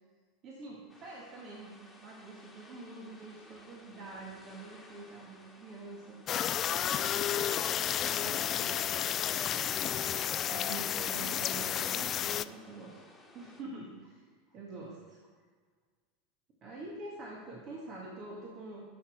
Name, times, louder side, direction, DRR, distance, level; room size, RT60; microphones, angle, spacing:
voice 1, 0.4-1.7 2.0-6.5 6.8-7.7 8.0-9.6 10.5-13.0 13.3-14.2 14.5-15.2 16.6-18.8, right 2 dB, 45° right, -2 dB, 1.8 m, -46 dB
sound 1, 0.9-13.6, left 2 dB, 5° left, 2.0 m, -56 dB
sound 2, 6.3-12.4, left 10 dB, 40° left, 0.3 m, -32 dB
10.0 x 6.9 x 4.5 m, 1.5 s
figure-of-eight pair, 80°, 0 cm